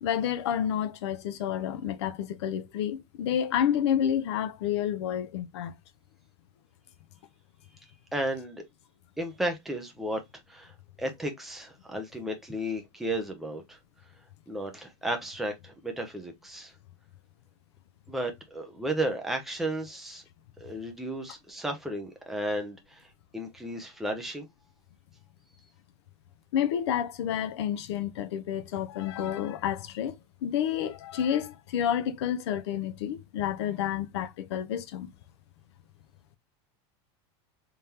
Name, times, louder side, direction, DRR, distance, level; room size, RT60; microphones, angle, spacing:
voice 1, 0.0-5.7 26.5-30.1 30.4-35.1, left 9 dB, 70° left, 0.7 m, -29 dB
voice 2, 8.1-8.6 9.2-10.2 10.5-10.7 11.0-13.8 14.5-16.7 18.1-20.2 20.6-23.0 23.3-24.5, right 1 dB, ahead, 0.6 m, -33 dB
3.6 x 3.4 x 2.8 m
supercardioid pair, 175°, 14 cm